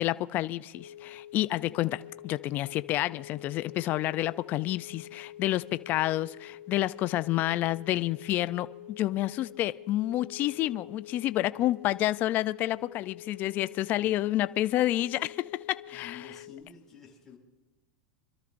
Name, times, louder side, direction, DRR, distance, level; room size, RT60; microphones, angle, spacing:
voice 1, 0.0-16.2, left 15 dB, 35° left, 0.4 m, -29 dB
sound 1, 0.7-16.6, left 11 dB, 75° left, 1.2 m, -47 dB
voice 2, 15.9-17.4, left 7 dB, 5° left, 5.9 m, -49 dB
28.5 x 13.0 x 2.6 m
supercardioid pair, 135°, 5 cm